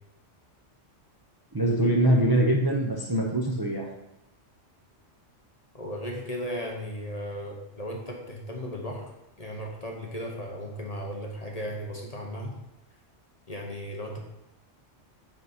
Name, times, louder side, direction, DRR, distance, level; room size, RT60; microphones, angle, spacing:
voice 1, 1.5-3.9, right 1 dB, 20° right, -1 dB, 0.8 m, -23 dB
voice 2, 5.7-9.1 9.4-12.5 13.5-14.2, equal, 35° left, 0 dB, 1.0 m, -36 dB
9.2 x 4.1 x 4.2 m, 0.88 s
omnidirectional pair, 1.2 m